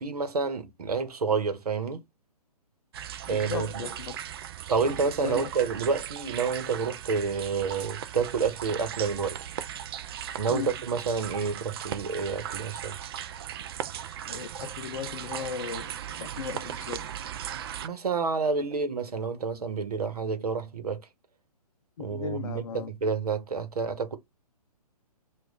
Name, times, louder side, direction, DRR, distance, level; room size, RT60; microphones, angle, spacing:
voice 1, 0.0-2.0 3.3-3.9 4.7-9.5 10.4-13.0 17.8-21.0 22.0-24.2, right 5 dB, 70° right, 1.1 m, -29 dB
sound 1, 2.9-17.9, right 10 dB, 40° right, 0.4 m, -38 dB
voice 2, 3.3-4.2 4.9-5.5 10.5-10.7 14.3-17.1 22.0-22.9, left 7 dB, 60° left, 0.5 m, -37 dB
3.1 x 2.5 x 3.7 m
figure-of-eight pair, 130°, 20 cm